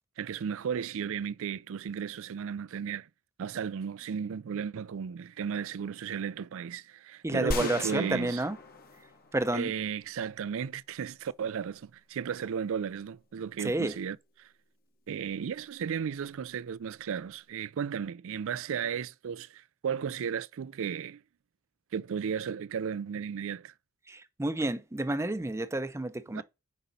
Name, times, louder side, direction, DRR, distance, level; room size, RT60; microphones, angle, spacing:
voice 1, 0.2-3.1 3.4-8.4 9.5-14.5 15.1-21.2 21.9-23.7 26.3-26.4, right 7 dB, 65° right, 0.4 m, -35 dB
voice 2, 7.2-8.6 9.3-9.7 13.6-13.9 24.1-26.4, right 1 dB, 15° right, 0.6 m, -30 dB
sound 1, 7.5-9.8, left 2 dB, 45° left, 1.0 m, -38 dB
8.2 x 5.2 x 4.0 m
head